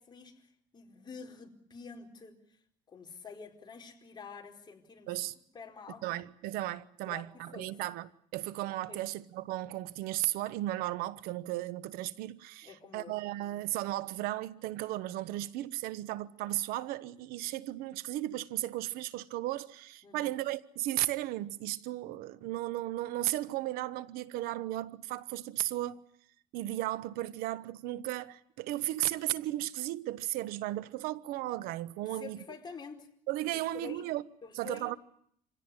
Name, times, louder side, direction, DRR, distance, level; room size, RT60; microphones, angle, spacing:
voice 1, 0.0-2.6 2.9-5.1 5.5-6.0 7.0-7.2 7.5-7.8 8.9-9.0 12.6-13.1 20.0-20.3 32.0-33.1 33.5-34.1 34.4-34.9, left 5 dB, 30° left, 4.6 m, -48 dB
voice 2, 6.0-26.0 26.5-32.4 33.3-34.2 34.5-35.0, right 15 dB, 85° right, 1.0 m, -35 dB
27.0 x 17.0 x 9.7 m
cardioid pair, 120°, 15 cm